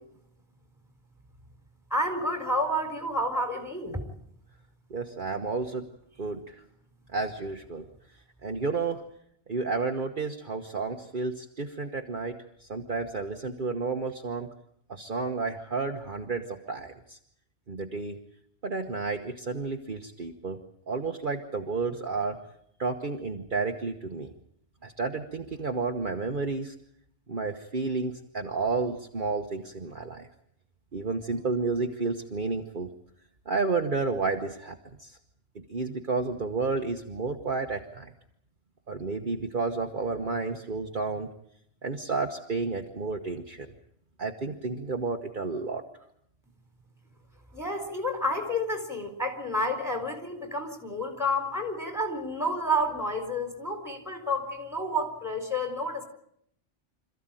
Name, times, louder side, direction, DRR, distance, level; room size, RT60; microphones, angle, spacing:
voice 1, 1.9-4.0 47.5-56.0, equal, ahead, 5 dB, 4.1 m, -30 dB
voice 2, 4.9-5.8 6.2-6.6 7.1-7.9 8.4-9.0 9.5-14.5 14.9-17.2 17.7-18.2 18.6-20.6 20.9-22.4 22.8-24.3 24.8-26.7 27.3-30.3 30.9-32.9 33.4-35.2 35.5-38.1 38.9-41.3 41.8-43.7 44.2-45.8, right 4 dB, 45° right, 3 dB, 1.4 m, -31 dB
26.5 x 14.5 x 9.1 m, 0.72 s
omnidirectional pair, 1.2 m